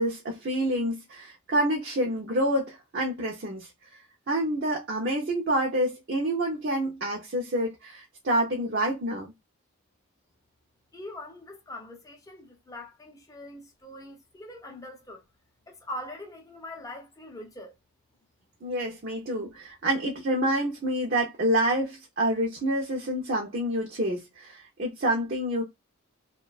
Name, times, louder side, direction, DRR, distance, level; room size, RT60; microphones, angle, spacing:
voice 1, 0.0-3.7 4.3-9.3 18.6-25.6, right 1 dB, 50° right, 0.5 m, -28 dB
voice 2, 10.9-15.2 15.7-17.7, left 1 dB, 15° left, 0.5 m, -42 dB
2.6 x 2.2 x 2.3 m
head